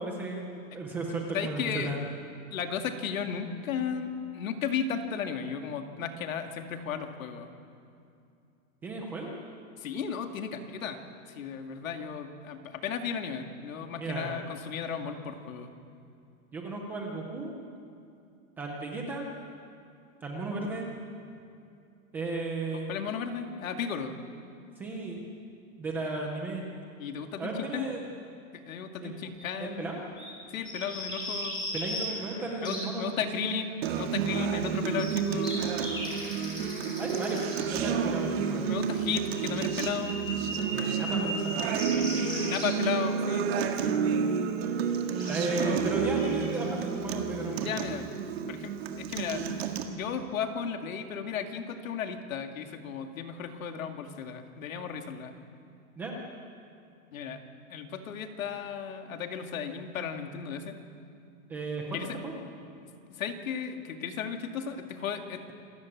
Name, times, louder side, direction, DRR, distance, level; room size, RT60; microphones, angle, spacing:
voice 1, 0.0-2.0 8.8-9.4 14.0-14.4 16.5-17.5 18.6-19.3 20.2-20.9 22.1-22.9 24.8-25.2 25.8-26.7 27.4-28.0 29.0-29.1 29.6-30.0 31.7-33.2 33.4-33.5 37.0-37.4 37.7-38.8 40.7-41.6 45.3-47.8 56.0-56.2 61.5-62.0 62.2-62.4, right 2 dB, 5° right, 0 dB, 0.5 m, -34 dB
voice 2, 1.3-1.9 2.5-7.5 9.8-11.0 11.3-15.7 22.9-24.1 27.0-27.9 28.5-30.0 30.5-31.6 32.6-35.7 38.7-40.3 42.3-43.7 47.6-48.1 48.5-55.3 57.1-57.4 57.7-60.8 61.9-62.2 62.8-65.4, left 7 dB, 75° left, 5 dB, 2.4 m, -35 dB
sound 1, 29.4-29.5 29.9-30.0 30.2-30.3 30.6-32.8 34.7-37.7 39.1-42.7 45.2-46.6, left 1 dB, 10° left, 6.4 m, -37 dB
Acoustic guitar, 33.8-49.8, right 6 dB, 50° right, 1.9 m, -30 dB
27.0 x 13.5 x 8.6 m, 2.5 s
supercardioid pair, 175°, 41 cm